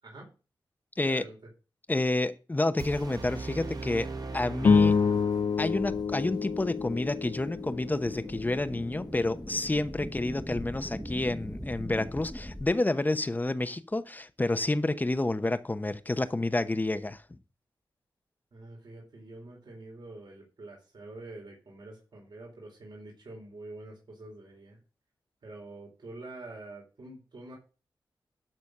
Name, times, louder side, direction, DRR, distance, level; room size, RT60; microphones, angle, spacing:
voice 1, 1.0-1.4 10.1-10.3 18.5-24.8 25.4-27.5, right 2 dB, 65° right, 4.2 m, -46 dB
voice 2, 1.9-4.9 5.6-17.2, left 2 dB, 20° left, 0.9 m, -29 dB
sound 1, 2.8-5.8, right 3 dB, 50° right, 1.2 m, -39 dB
sound 2, 4.6-9.1, left 5 dB, 55° left, 0.5 m, -27 dB
sound 3, 5.7-12.7, equal, ahead, 1.2 m, -41 dB
12.0 x 4.2 x 6.5 m
cardioid pair, 75°, 8 cm